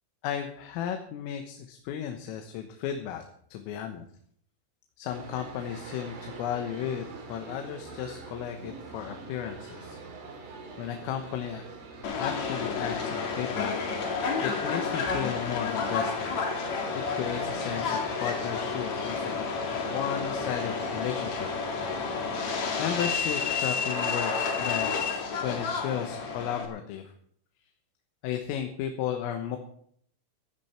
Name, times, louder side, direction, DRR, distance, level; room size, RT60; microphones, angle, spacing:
voice 1, 0.2-3.2 3.7-3.9 5.0-10.0 10.8-11.6 12.2-13.8 14.4-16.3 16.9-21.5 22.8-27.0 28.2-29.6, left 9 dB, 85° left, 5 dB, 3.9 m, -34 dB
sound 1, 5.1-22.4, right 3 dB, 75° right, 6.2 m, -45 dB
Subway metro underground, 12.0-26.7, left 5 dB, 45° left, 2.7 m, -30 dB
15.5 x 14.5 x 4.4 m, 0.63 s
omnidirectional pair, 5.8 m